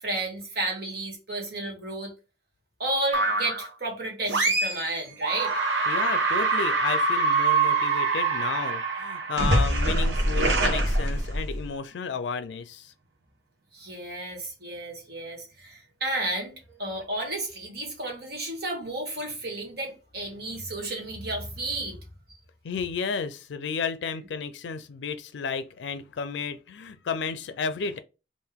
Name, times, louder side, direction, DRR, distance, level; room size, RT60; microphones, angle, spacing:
voice 1, 0.0-2.1 2.8-5.5 13.7-22.0, right 2 dB, 60° right, 1.5 m, -32 dB
sound 1, 3.1-3.7 4.3-4.9 5.2-11.7, right 3 dB, 85° right, 0.9 m, -24 dB
voice 2, 5.9-12.9 22.6-28.0, left 5 dB, 90° left, 0.4 m, -32 dB
3.6 x 2.5 x 3.5 m
head